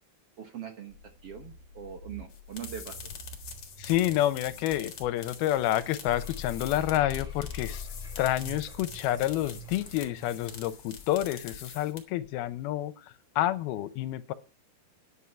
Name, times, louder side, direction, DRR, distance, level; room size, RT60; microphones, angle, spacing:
voice 1, 0.4-0.9 1.2-3.0, right 9 dB, 70° right, 4 dB, 1.4 m, -41 dB
sound 1, 0.9-10.4, right 3 dB, 45° right, 3.4 m, -49 dB
sound 2, 2.3-12.3, left 7 dB, 50° left, 1.9 m, -45 dB
voice 2, 3.8-7.9 8.2-14.3, left 13 dB, 80° left, 13 dB, 2.5 m, -29 dB
sound 3, 6.0-11.2, left 7 dB, ahead, 1.1 m, -43 dB
10.0 x 7.9 x 7.0 m, 0.35 s
omnidirectional pair, 4.6 m